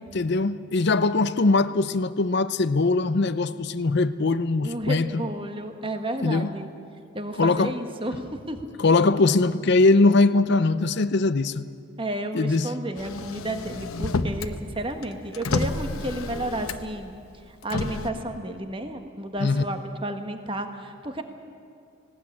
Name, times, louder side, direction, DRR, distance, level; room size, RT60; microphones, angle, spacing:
voice 1, 0.1-5.2 6.2-6.5 7.4-7.7 8.8-11.6 12.3-12.7 19.4-19.6, left 3 dB, 50° left, 0.5 m, -21 dB
voice 2, 4.6-6.7 7.1-8.6 12.0-17.2 17.5-21.2, right 1 dB, 25° right, 1.3 m, -32 dB
Motor vehicle (road), 13.0-14.6 14.9-17.0 17.6-18.1, left 3 dB, 85° left, 1.0 m, -30 dB
19.0 x 18.0 x 8.7 m
head